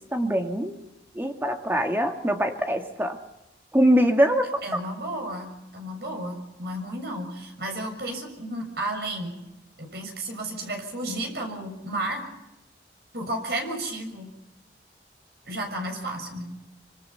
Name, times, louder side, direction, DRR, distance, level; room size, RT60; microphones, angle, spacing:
voice 1, 0.1-0.8 1.1-3.2 3.7-4.8, equal, 10° right, 5 dB, 1.9 m, -23 dB
voice 2, 4.6-9.4 9.8-12.2 13.1-14.3 15.4-16.5, right 1 dB, 65° right, 3 dB, 6.9 m, -32 dB
25.5 x 25.5 x 5.7 m, 0.94 s
head